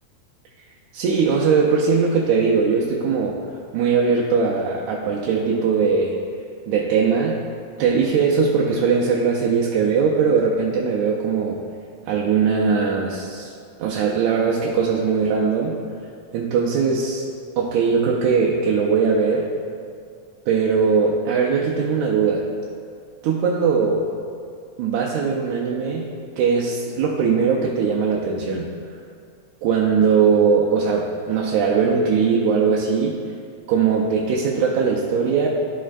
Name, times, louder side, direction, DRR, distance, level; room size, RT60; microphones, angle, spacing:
voice 1, 0.9-3.4 3.7-6.2 6.7-7.4 7.8-11.6 12.0-13.5 13.8-15.8 16.3-17.2 17.6-19.5 20.5-22.5 23.2-24.1 24.8-28.7 29.6-33.2 33.7-35.5, right 5 dB, 80° right, -3 dB, 2.0 m, -20 dB
14.0 x 4.9 x 2.5 m, 2.3 s
omnidirectional pair, 3.4 m